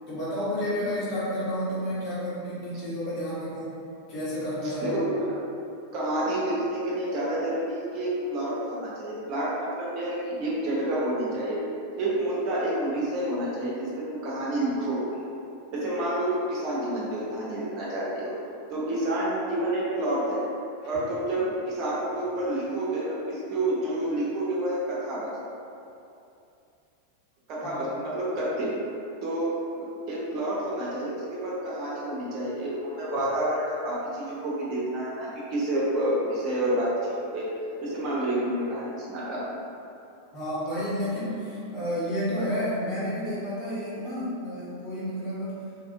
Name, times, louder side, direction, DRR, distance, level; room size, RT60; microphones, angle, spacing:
voice 1, 0.1-3.8 4.1-5.0 27.6-27.8 40.3-45.6, equal, 35° left, -10 dB, 1.2 m, -31 dB
voice 2, 4.6-5.3 5.9-11.6 12.0-15.0 15.7-18.3 18.7-20.4 20.8-25.3 27.5-28.7 29.2-37.5 37.8-39.5, right 1 dB, 40° right, -6 dB, 0.8 m, -29 dB
2.9 x 2.6 x 2.5 m, 2.7 s
figure-of-eight pair, 90°, 0 cm